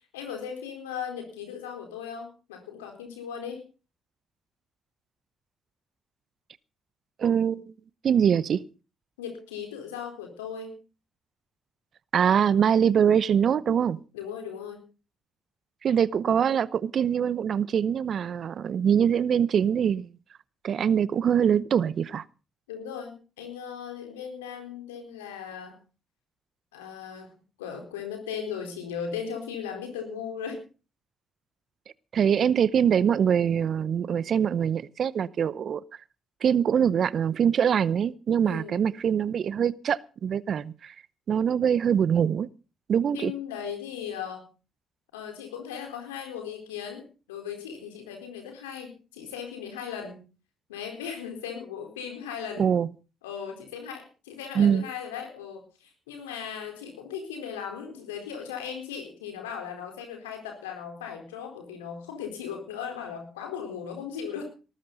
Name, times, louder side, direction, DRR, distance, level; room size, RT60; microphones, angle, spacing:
voice 1, 0.1-3.7 9.2-10.8 14.1-14.8 22.7-25.8 26.7-30.6 38.4-38.7 43.1-44.5 45.1-50.2 50.7-52.7 53.2-64.4, left 7 dB, 85° left, 4.1 m, -37 dB
voice 2, 7.2-7.6 8.0-8.6 12.1-14.0 15.8-20.1 20.6-22.2 32.1-35.8 36.4-40.9 41.3-42.5 42.9-43.3 52.6-52.9 54.5-54.8, right 8 dB, 55° right, 0.7 m, -23 dB
18.0 x 14.5 x 4.0 m
hypercardioid pair, 50°, 0 cm